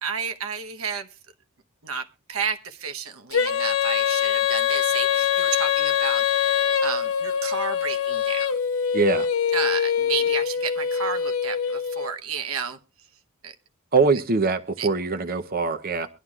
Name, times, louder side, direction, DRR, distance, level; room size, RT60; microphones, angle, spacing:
voice 1, 0.0-1.1 1.8-6.5 6.8-8.4 9.5-12.8 13.4-13.5 14.8-14.9, right 6 dB, 85° right, 7 dB, 1.1 m, -31 dB
Female singing, 3.3-12.1, left 8 dB, 80° left, 1.0 m, -24 dB
voice 2, 8.9-9.3 13.9-16.1, right 4 dB, 45° right, 8 dB, 0.7 m, -22 dB
23.5 x 11.5 x 2.4 m, 0.29 s
head